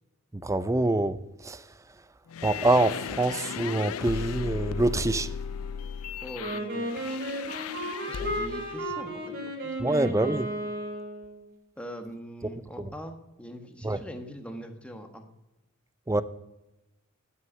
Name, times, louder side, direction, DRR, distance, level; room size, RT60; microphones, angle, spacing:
voice 1, 0.4-1.2 1.4-1.6 2.4-5.3 9.8-10.5 13.8-14.0 16.1-16.2, right 2 dB, 15° right, 0.5 m, -25 dB
sound 1, 2.3-8.7, left 7 dB, 75° left, 0.4 m, -36 dB
voice 2, 6.2-7.2 8.1-10.0 11.8-15.3, equal, 5° left, 1.3 m, -42 dB
Wind instrument woodwind instrument, 6.4-11.4, equal, 45° right, 4.5 m, -33 dB
12.5 x 6.5 x 8.5 m
head